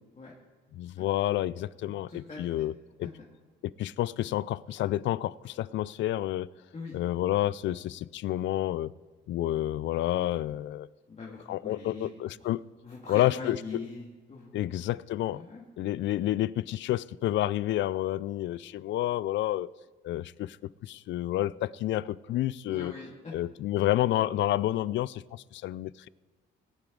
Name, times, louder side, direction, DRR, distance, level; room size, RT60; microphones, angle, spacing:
voice 1, 0.7-2.7 3.0-3.1 3.6-6.5 6.9-8.9 9.3-10.9 11.5-12.6 13.1-13.8 14.5-15.4 15.8-19.7 20.0-22.9 23.3-26.1, left 14 dB, 70° left, 20 dB, 0.4 m, -29 dB
voice 2, 2.1-2.4 3.0-3.1 6.7-7.0 11.1-12.1 12.4-12.5 12.8-14.7 15.3-15.6 22.7-23.3, left 3 dB, 35° left, -4 dB, 2.1 m, -42 dB
20.0 x 8.8 x 3.9 m, 1.3 s
cardioid pair, 90°, 20 cm